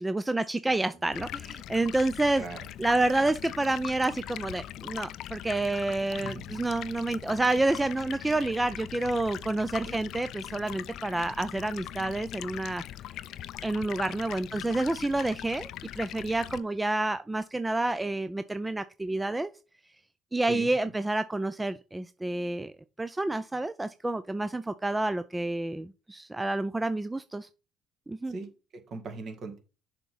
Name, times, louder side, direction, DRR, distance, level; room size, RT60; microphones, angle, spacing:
voice 1, 0.0-2.4 2.8-12.8 13.6-15.7 16.0-19.5 20.3-22.7 23.0-27.5 28.1-28.3, right 2 dB, 15° right, 0.4 m, -29 dB
Stream, 1.1-16.6, left 12 dB, 65° left, 0.4 m, -41 dB
voice 2, 2.4-2.7 6.1-6.6 9.9-10.0 14.5-14.7 20.5-20.9 28.3-29.6, right 3 dB, 55° right, 1.9 m, -40 dB
6.7 x 3.7 x 5.5 m
hypercardioid pair, 65°, 0 cm